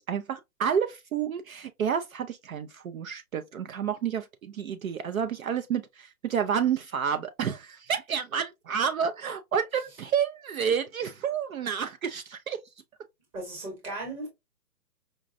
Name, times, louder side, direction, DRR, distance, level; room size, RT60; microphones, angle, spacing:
voice 1, 0.0-12.6, right 7 dB, 60° right, 0.5 m, -30 dB
voice 2, 13.3-14.3, right 2 dB, 10° right, 1.0 m, -36 dB
5.1 x 2.2 x 2.5 m
hypercardioid pair, 160°, 48 cm